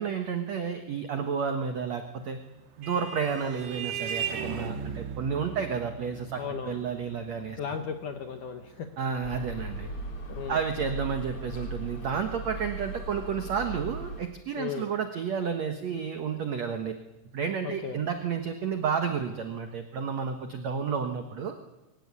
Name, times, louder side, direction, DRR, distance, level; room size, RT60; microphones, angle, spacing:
voice 1, 0.0-2.4 2.8-6.4 6.7-7.6 9.0-9.9 10.5-17.0 17.3-21.5, right 6 dB, 90° right, 6 dB, 1.5 m, -31 dB
Vehicle horn car horn honking, 2.2-11.2, right 7 dB, 55° right, 2.3 m, -39 dB
voice 2, 6.4-6.8 7.6-8.9 10.3-10.6 14.6-14.9 17.6-18.0, left 7 dB, 70° left, 7 dB, 1.9 m, -35 dB
sound 1, 9.2-14.2, right 2 dB, 35° left, 3.4 m, -38 dB
22.5 x 16.0 x 9.7 m, 1.1 s
omnidirectional pair, 5.1 m